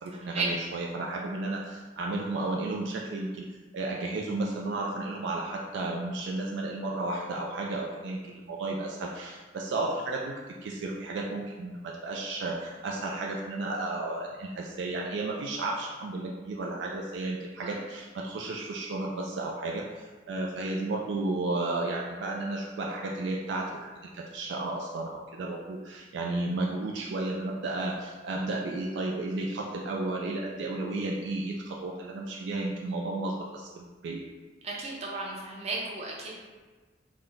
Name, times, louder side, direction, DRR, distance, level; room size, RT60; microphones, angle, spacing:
voice 1, 0.0-3.4 3.7-10.3 10.6-34.3, right 2 dB, 70° right, -1 dB, 0.3 m, -33 dB
voice 2, 34.6-36.4, right 3 dB, 35° right, -4 dB, 0.7 m, -34 dB
3.6 x 2.1 x 3.8 m, 1.3 s
head